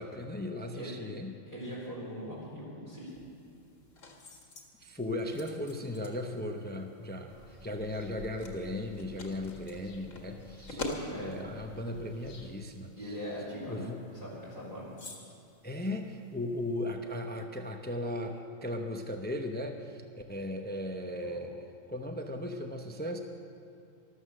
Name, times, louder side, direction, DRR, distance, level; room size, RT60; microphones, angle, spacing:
voice 1, 0.0-1.3 4.8-12.9 13.7-14.0 15.6-20.0 20.3-21.5 21.9-23.2, left 1 dB, 10° left, 4 dB, 0.7 m, -37 dB
voice 2, 1.5-3.1 11.1-11.5 12.9-14.9 21.2-21.3, equal, 30° right, -7 dB, 3.5 m, -41 dB
sound 1, 3.1-16.9, left 1 dB, 85° left, 2.2 m, -47 dB
sound 2, 7.3-12.6, left 3 dB, 55° left, 1.3 m, -53 dB
14.0 x 13.0 x 6.6 m, 2.5 s
omnidirectional pair, 1.3 m